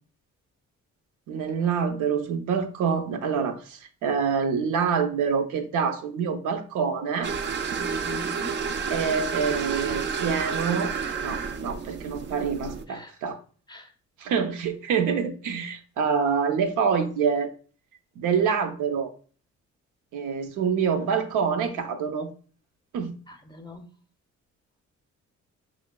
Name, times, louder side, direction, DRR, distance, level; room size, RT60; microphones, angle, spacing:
voice 1, 1.3-7.3 8.9-10.9 11.2-13.4 14.2-17.5 18.2-19.1 20.1-22.3 22.9-23.1, right 6 dB, 80° right, 0.6 m, -26 dB
sound 1, 7.2-12.8, right 6 dB, 40° right, 0.4 m, -30 dB
voice 2, 7.8-8.5 12.9-13.1 13.7-13.8 23.5-23.8, left 3 dB, 15° left, 0.6 m, -41 dB
5.6 x 3.2 x 2.2 m
cardioid pair, 90°, 30 cm